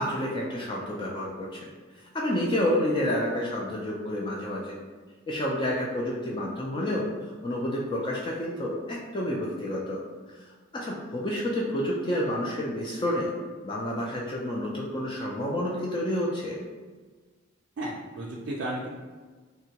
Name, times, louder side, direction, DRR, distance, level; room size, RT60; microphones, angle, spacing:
voice 1, 0.0-1.7 2.0-4.8 5.3-10.0 10.7-13.3 13.6-16.6, left 1 dB, 25° left, -4 dB, 0.3 m, -29 dB
voice 2, 17.8-18.9, right 1 dB, 60° right, -4 dB, 0.4 m, -33 dB
2.8 x 2.2 x 2.8 m, 1.4 s
head